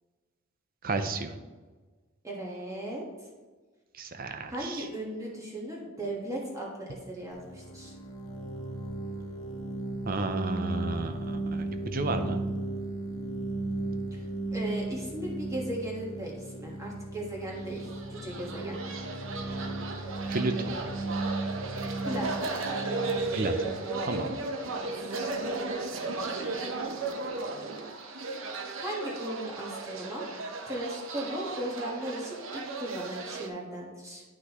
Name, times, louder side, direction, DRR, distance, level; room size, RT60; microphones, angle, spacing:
voice 1, 0.8-1.4 3.9-4.9 10.1-12.4 20.3-20.8 23.3-23.7 24.0-24.4, right 3 dB, 45° right, 8 dB, 0.7 m, -32 dB
voice 2, 2.2-3.1 4.5-8.0 14.1-14.2 14.5-18.8 22.0-22.4 28.8-30.3 30.6-34.2, right 1 dB, 15° right, -3 dB, 1.5 m, -37 dB
sound 1, 7.3-24.9, right 2 dB, 75° left, 1.0 m, -36 dB
sound 2, 17.7-33.5, right 3 dB, 70° right, 0.9 m, -35 dB
9.9 x 5.9 x 3.1 m, 1.3 s
head